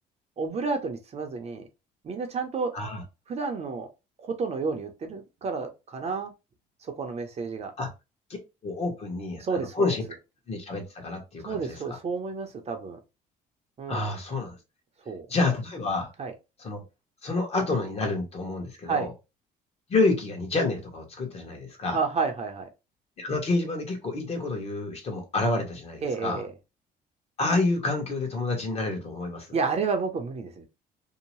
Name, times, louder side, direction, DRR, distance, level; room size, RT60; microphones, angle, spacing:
voice 1, 0.4-1.7 2.0-2.7 3.3-3.9 4.2-6.3 6.8-7.7 9.4-9.8 11.4-13.0 13.8-14.1 15.1-15.3 16.2-16.3 18.9-19.1 21.9-22.7 26.0-26.5 29.5-30.7, right 4 dB, 40° right, 0.6 m, -30 dB
voice 2, 8.6-10.0 10.5-12.0 13.9-14.6 15.3-16.1 16.6-16.8 17.2-19.1 19.9-22.0 23.2-26.4 27.4-29.5, left 3 dB, 35° left, 1.0 m, -28 dB
2.7 x 2.1 x 3.0 m
cardioid pair, 110°, 17 cm